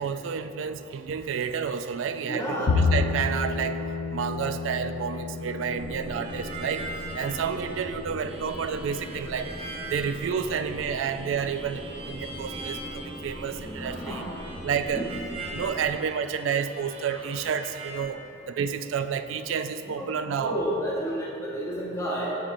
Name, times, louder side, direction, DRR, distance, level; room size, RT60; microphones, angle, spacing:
voice 1, 0.0-3.8 4.1-6.9 7.1-9.5 9.9-14.3 14.6-15.1 15.5-18.2 18.5-20.6, right 7 dB, 80° right, 10 dB, 0.3 m, -30 dB
voice 2, 2.3-2.8 5.5-5.6 13.5-14.3 15.0-15.1 17.1-17.2 19.8-22.4, equal, 15° left, -6 dB, 0.8 m, -32 dB
Bowed string instrument, 2.7-9.0, left 4 dB, 70° left, 0.4 m, -30 dB
sound 1, 5.7-15.9, equal, 15° right, 1.0 m, -40 dB
Harmonica, 6.1-18.0, right 2 dB, 30° right, 0.5 m, -42 dB
7.1 x 6.2 x 2.5 m, 2.7 s
head